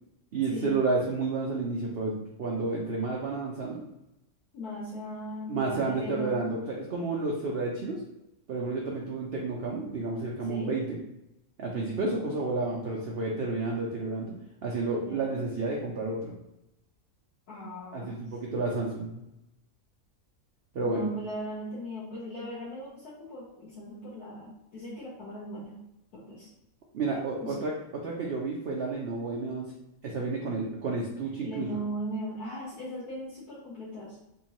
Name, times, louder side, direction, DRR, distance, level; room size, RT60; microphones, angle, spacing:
voice 1, 0.3-3.8 5.5-8.0 8.5-11.0 11.6-14.3 14.6-16.3 17.9-19.2 20.7-21.0 26.9-29.7 30.0-31.7, right 3 dB, 70° right, -2 dB, 0.5 m, -31 dB
voice 2, 4.5-6.4 10.5-10.7 14.9-15.3 17.5-18.2 20.8-25.7 26.1-26.5 27.4-27.5 31.4-34.2, equal, 75° left, -8 dB, 1.4 m, -38 dB
3.5 x 2.7 x 2.9 m, 0.89 s
omnidirectional pair, 1.6 m